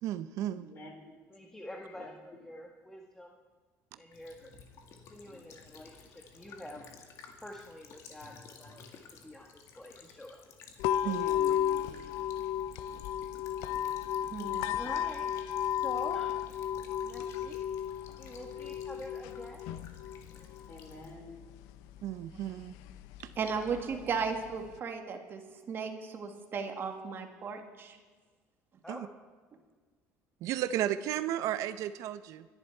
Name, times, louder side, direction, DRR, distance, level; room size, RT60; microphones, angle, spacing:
voice 1, 0.0-0.7 11.0-11.3 22.0-22.7 23.2-23.3 28.9-29.1 30.4-32.5, right 11 dB, 65° right, 12 dB, 0.6 m, -34 dB
voice 2, 0.6-1.1 1.9-2.1 11.2-12.0 20.7-21.4, left 2 dB, 40° left, 3 dB, 3.8 m, -47 dB
voice 3, 1.3-3.3 4.0-4.5 5.1-6.8 7.4-8.8 9.2-10.4 11.0-11.2 14.6-16.3 17.0-17.6 18.2-19.7 23.6-24.0 28.8-29.1, left 1 dB, 10° left, 0 dB, 1.3 m, -46 dB
Child speech kid speaking / Bird vocalization bird call bird song / Stream, 4.1-21.1, left 5 dB, 60° left, 2.0 m, -54 dB
sound 1, 10.8-24.8, left 10 dB, 90° left, 0.6 m, -35 dB
voice 4, 14.3-14.8 23.4-28.0, right 5 dB, 40° right, 5 dB, 1.6 m, -36 dB
24.0 x 11.0 x 4.5 m, 1.5 s
cardioid pair, 125°, 6 cm